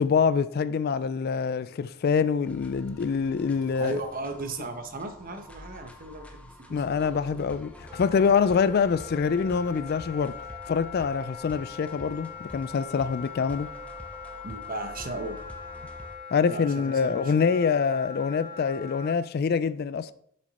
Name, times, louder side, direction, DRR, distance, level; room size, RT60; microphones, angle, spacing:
voice 1, 0.0-4.0 6.7-13.7 16.3-20.1, left 6 dB, 50° left, 0.3 m, -25 dB
sound 1, 2.4-16.2, equal, 5° left, 0.8 m, -47 dB
voice 2, 3.8-7.4 14.4-15.4 16.5-17.4, right 2 dB, 45° right, 1.0 m, -36 dB
Wind instrument woodwind instrument, 7.9-19.1, left 6 dB, 10° right, 3.0 m, -42 dB
7.5 x 6.1 x 4.2 m
head